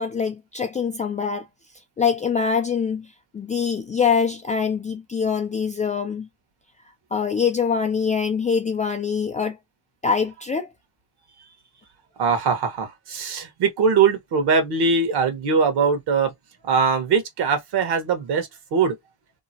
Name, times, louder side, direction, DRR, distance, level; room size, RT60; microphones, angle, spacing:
voice 1, 0.0-1.5 2.0-6.3 7.1-9.6 10.0-10.7, left 6 dB, 15° left, 0.4 m, -24 dB
voice 2, 12.2-16.3 16.6-18.9, right 5 dB, 50° right, 1.3 m, -21 dB
2.9 x 2.1 x 2.7 m
supercardioid pair, 90°, 50 cm